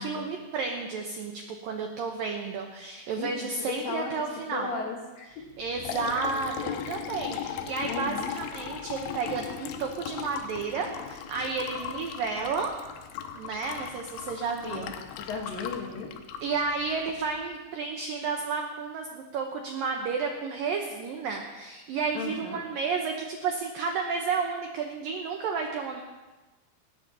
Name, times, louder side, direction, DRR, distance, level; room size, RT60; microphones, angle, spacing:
voice 1, 0.0-4.7 5.6-12.7 13.3-14.9 16.4-26.0, right 5 dB, 90° right, 2 dB, 2.0 m, -32 dB
voice 2, 3.2-4.2 4.5-5.5 7.9-8.3 14.6-16.1 22.1-22.6, left 4 dB, 65° left, 1 dB, 2.6 m, -36 dB
Liquid, 5.5-17.4, left 9 dB, 85° left, 3.4 m, -38 dB
19.0 x 19.0 x 2.9 m, 1.2 s
omnidirectional pair, 5.5 m